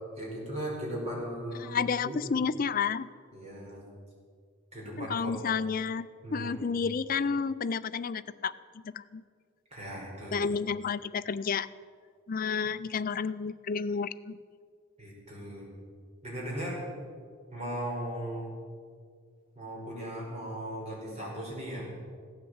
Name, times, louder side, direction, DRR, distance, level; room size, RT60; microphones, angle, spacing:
voice 1, 0.1-1.7 2.0-2.2 3.3-3.8 4.7-5.4 6.2-6.6 9.7-10.4 15.0-15.7 16.2-16.8 17.5-18.5 19.5-21.8, right 1 dB, 30° right, -4 dB, 5.0 m, -37 dB
voice 2, 1.6-3.1 5.0-8.5 8.8-9.2 10.3-11.7 12.3-14.4, left 5 dB, 40° left, 15 dB, 0.4 m, -31 dB
16.0 x 10.0 x 8.0 m, 2.1 s
head